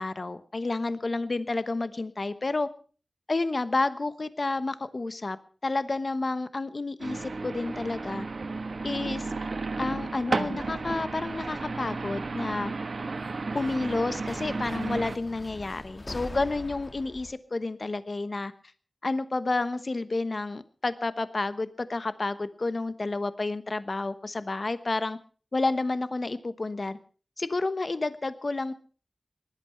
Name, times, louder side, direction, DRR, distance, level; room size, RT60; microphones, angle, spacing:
voice 1, 0.0-2.7 3.3-5.4 5.6-8.3 8.8-9.3 9.8-12.7 13.5-18.5 19.0-25.2 25.5-27.0 27.4-28.7, left 3 dB, 55° left, 13 dB, 1.0 m, -30 dB
sound 1, 7.0-15.2, right 3 dB, 75° right, 1.4 m, -33 dB
sound 2, 8.1-9.4 9.7-10.4 11.5-11.6 13.2-17.3, left 2 dB, 35° left, 1.4 m, -44 dB
19.5 x 12.0 x 5.8 m, 0.41 s
wide cardioid pair, 60°, 0 cm